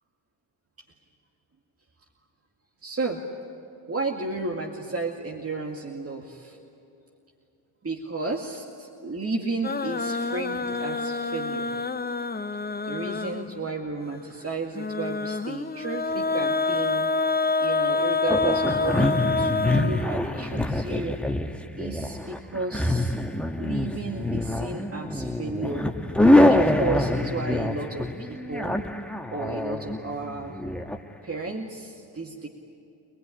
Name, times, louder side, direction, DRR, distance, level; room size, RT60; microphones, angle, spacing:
voice 1, 2.8-3.2 3.9-6.6 7.8-11.7 12.8-17.1 17.6-21.2 21.8-23.2 23.6-25.9 26.4-28.8 29.3-30.6 31.2-32.5, right 3 dB, 30° right, 1 dB, 2.2 m, -33 dB
sound 1, 9.6-13.7 14.8-20.6, left 3 dB, 20° left, 0.9 m, -27 dB
sound 2, 18.3-31.0, left 1 dB, ahead, 1.5 m, -25 dB
25.5 x 19.5 x 10.0 m, 2.9 s
hypercardioid pair, 45°, 46 cm